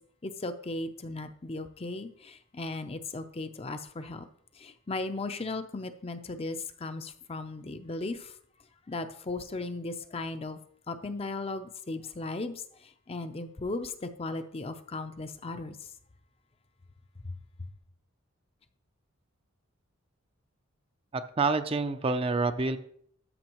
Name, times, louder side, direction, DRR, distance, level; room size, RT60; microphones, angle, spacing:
voice 1, 0.2-4.3 4.5-8.4 8.9-10.6 10.9-15.8 17.2-17.4, left 2 dB, 30° left, 9 dB, 0.5 m, -37 dB
voice 2, 21.1-22.8, right 3 dB, 25° right, 9 dB, 0.4 m, -27 dB
13.0 x 6.8 x 3.0 m, 0.65 s
head